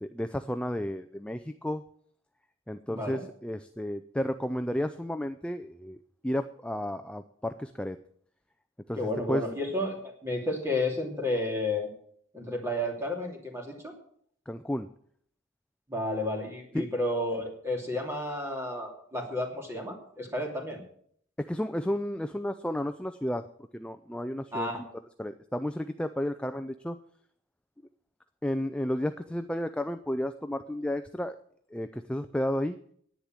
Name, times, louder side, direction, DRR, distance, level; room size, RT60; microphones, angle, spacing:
voice 1, 0.0-1.8 2.7-6.0 6.2-8.0 8.9-9.4 14.5-14.9 16.7-16.9 21.4-23.4 23.7-24.7 25.2-27.0 28.4-31.4 31.7-32.8, left 1 dB, 5° left, 9 dB, 0.4 m, -32 dB
voice 2, 2.9-3.2 9.0-11.9 12.3-13.9 15.9-20.8 24.5-24.8, left 1 dB, 15° right, 1 dB, 2.7 m, -32 dB
10.5 x 9.7 x 7.5 m, 0.62 s
head